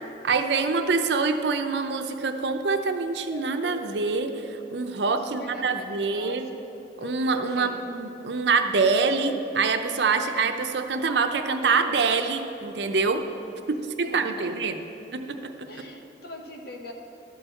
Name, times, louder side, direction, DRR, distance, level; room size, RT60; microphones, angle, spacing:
voice 1, 0.2-6.5 7.0-13.2 13.7-14.8 15.1-15.8, right 4 dB, 70° right, 7 dB, 0.6 m, -25 dB
sound 1, 1.7-5.6 7.0-8.9 9.2-13.7, right 3 dB, 40° left, 1.2 m, -44 dB
voice 2, 5.3-6.6 7.5-7.9 14.0-14.5 15.7-16.9, equal, 60° left, 3 dB, 1.0 m, -41 dB
12.0 x 4.6 x 7.6 m, 2.8 s
head